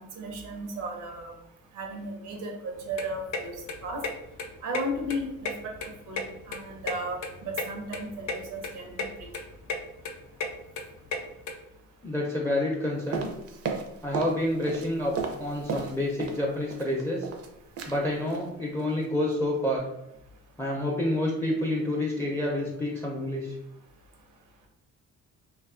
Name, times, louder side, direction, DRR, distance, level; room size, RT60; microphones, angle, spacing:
voice 1, 0.0-1.3 1.7-3.5 3.8-4.0 4.6-5.5 5.8-9.0, right 1 dB, 85° right, 1 dB, 0.7 m, -35 dB
sound 1, 2.7-11.5, left 3 dB, 70° left, 0.5 m, -35 dB
voice 2, 12.0-13.3 14.0-17.3 17.9-19.8 20.6-23.6, left 1 dB, 10° left, -2 dB, 0.4 m, -28 dB
sound 2, 13.1-14.4 14.6-16.4 16.7-17.5 17.8-18.0 18.3-18.5 18.8-19.1 19.3-19.4, right 6 dB, 50° right, 0.5 m, -34 dB
2.5 x 2.3 x 2.4 m, 0.87 s
cardioid pair, 90°, 30 cm